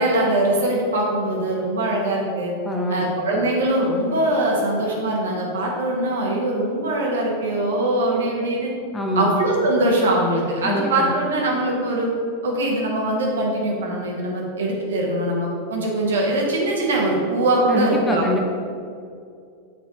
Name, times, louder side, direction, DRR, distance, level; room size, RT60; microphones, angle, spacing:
voice 1, 0.0-2.5 2.9-8.7 9.1-12.1 12.4-18.3, right 1 dB, 65° right, -2 dB, 1.3 m, -22 dB
voice 2, 2.6-3.1 8.9-9.3 10.6-11.1 17.7-18.5, equal, 10° left, 0 dB, 0.9 m, -24 dB
7.3 x 4.0 x 4.3 m, 2.4 s
figure-of-eight pair, 90°, 0 cm